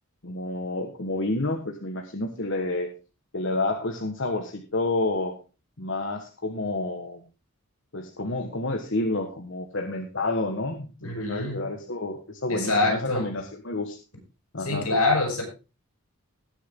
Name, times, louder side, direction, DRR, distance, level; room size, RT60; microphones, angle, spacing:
voice 1, 0.2-2.9 3.3-5.4 5.8-7.2 7.9-14.0 14.5-14.9, left 2 dB, 55° left, 5 dB, 1.4 m, -29 dB
voice 2, 11.0-11.6 12.5-13.2 14.6-15.4, left 2 dB, 80° left, 2 dB, 7.2 m, -25 dB
19.5 x 6.9 x 3.7 m, 0.32 s
head